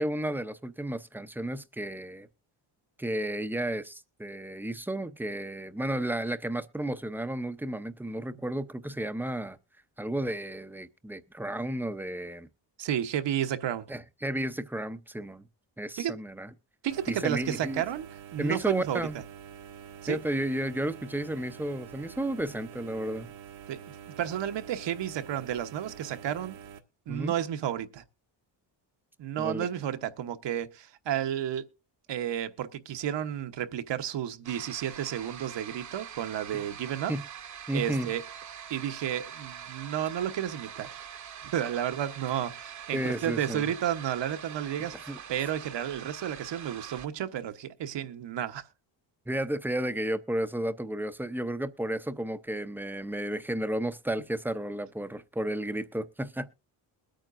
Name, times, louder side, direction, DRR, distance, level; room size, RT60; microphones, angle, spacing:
voice 1, 0.0-2.3 3.0-9.6 10.0-12.5 13.9-15.5 15.8-16.5 17.1-17.8 18.4-19.1 20.1-23.3 27.1-27.3 29.4-29.7 36.5-36.6 37.1-37.3 37.7-38.1 42.9-43.6 45.1-45.2 49.3-56.5, right 1 dB, 5° right, 0.6 m, -32 dB
voice 2, 12.8-13.9 16.0-16.1 16.8-19.0 20.0-20.2 23.7-23.8 24.2-26.6 27.1-28.0 29.2-31.6 32.1-37.1 37.7-38.2 38.7-41.1 41.4-48.6, right 10 dB, 70° right, 1.1 m, -32 dB
sound 1, 16.9-26.8, right 8 dB, 85° right, 1.5 m, -47 dB
sound 2, 34.4-47.1, right 8 dB, 40° right, 0.9 m, -44 dB
21.5 x 9.0 x 2.5 m
cardioid pair, 110°, 45 cm